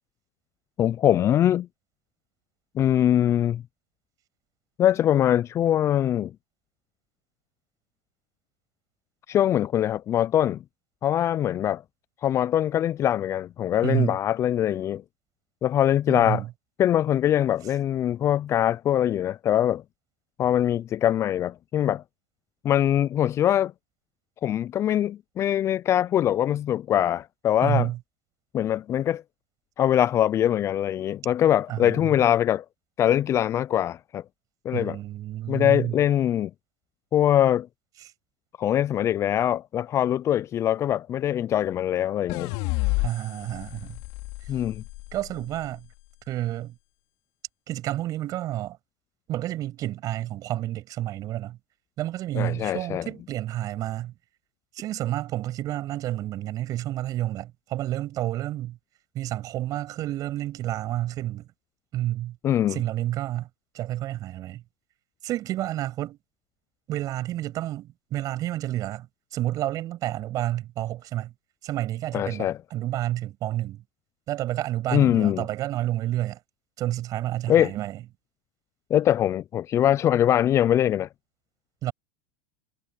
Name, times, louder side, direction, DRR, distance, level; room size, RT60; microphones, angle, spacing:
voice 1, 0.8-1.7 2.8-3.6 4.8-6.3 9.3-10.6 11.0-11.8 12.2-15.0 15.6-16.4 16.8-19.8 20.4-22.0 22.6-23.7 24.4-27.9 28.5-29.2 29.8-32.6 33.0-34.2 34.6-35.0 35.5-36.5 37.1-37.7 38.6-42.5 44.5-44.8 52.3-53.1 62.4-62.8 72.1-72.6 74.9-75.4 77.5-77.7 78.9-81.1, left 11 dB, 35° left, 0.5 m, -23 dB
voice 2, 13.8-14.2 16.1-16.5 27.6-28.0 31.7-32.1 34.7-36.0 43.0-44.0 45.1-45.9 46.3-46.7 47.7-48.8 49.3-51.6 52.0-54.1 54.7-58.8 59.1-61.5 61.9-62.4 62.7-63.5 63.7-64.6 65.2-66.2 66.9-69.1 69.3-71.3 71.6-73.8 74.3-76.4 76.8-78.0 81.8-81.9, right 14 dB, 45° right, 7.5 m, -30 dB
sound 1, 42.3-45.5, left 25 dB, 60° left, 3.9 m, -30 dB
hypercardioid pair, 105°, 9 cm